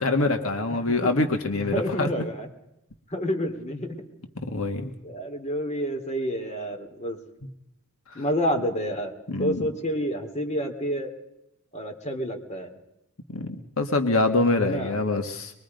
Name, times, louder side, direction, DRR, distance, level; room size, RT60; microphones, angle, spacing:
voice 1, 0.0-2.1 4.4-4.9 9.3-9.6 13.3-15.5, left 2 dB, 75° left, 6 dB, 1.7 m, -25 dB
voice 2, 0.7-1.1 1.5-2.5 3.1-4.0 5.0-7.2 8.1-9.1 9.4-11.1 11.7-12.8 14.6-15.0, equal, 35° left, 4 dB, 2.6 m, -29 dB
24.5 x 22.5 x 5.3 m, 0.83 s
head